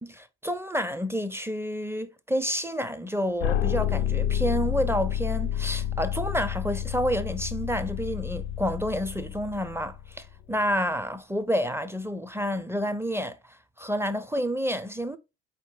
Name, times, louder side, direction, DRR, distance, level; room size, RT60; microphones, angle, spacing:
voice 1, 0.0-13.4 13.8-15.2, equal, 5° right, 0.4 m, -29 dB
sound 1, 3.4-10.3, left 10 dB, 80° left, 0.5 m, -29 dB
4.3 x 2.8 x 3.8 m
hypercardioid pair, 55°, 38 cm